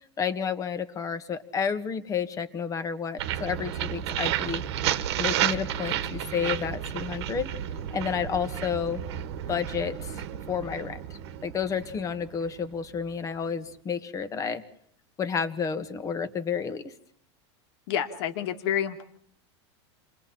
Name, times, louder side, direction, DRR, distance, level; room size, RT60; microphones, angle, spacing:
voice 1, 0.2-4.6 5.2-7.5 7.9-9.0 9.5-11.0 11.4-14.6 15.2-16.9, left 6 dB, 25° left, 10 dB, 1.7 m, -31 dB
sound 1, 3.2-13.0, right 11 dB, 70° right, 1.7 m, -32 dB
voice 2, 17.9-19.0, left 9 dB, 65° left, 6 dB, 2.4 m, -28 dB
29.5 x 23.0 x 4.4 m, 0.66 s
supercardioid pair, 140°, 14 cm